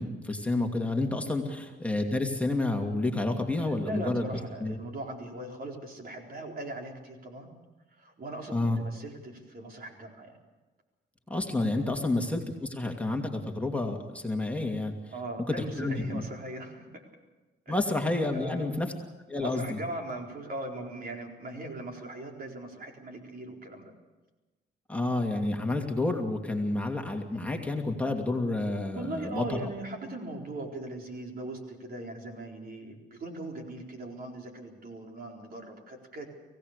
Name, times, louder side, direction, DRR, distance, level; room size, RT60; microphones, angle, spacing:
voice 1, 0.0-4.2 4.6-4.8 8.5-8.8 11.3-14.9 15.8-16.2 17.7-18.9 19.3-19.8 24.9-29.7, left 2 dB, 5° left, 2 dB, 2.6 m, -29 dB
voice 2, 3.6-7.5 7.9-10.4 11.9-12.1 15.1-17.0 17.7-17.8 18.3-18.8 19.4-23.9 28.9-36.3, right 2 dB, 50° right, 2 dB, 4.3 m, -39 dB
25.0 x 17.0 x 6.7 m, 1.2 s
cardioid pair, 90°, 20 cm